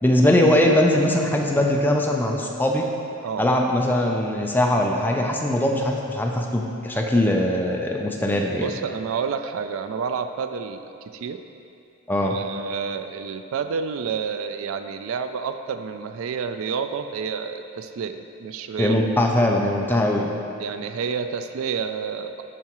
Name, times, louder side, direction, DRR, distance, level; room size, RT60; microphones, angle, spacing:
voice 1, 0.0-2.8 3.4-8.7 12.1-12.4 18.8-20.3, left 1 dB, 10° left, 0 dB, 0.4 m, -21 dB
voice 2, 8.6-10.8 11.1-11.4 12.2-19.0 20.6-22.4, right 6 dB, 65° right, 8 dB, 0.3 m, -29 dB
11.0 x 4.8 x 3.0 m, 2.6 s
head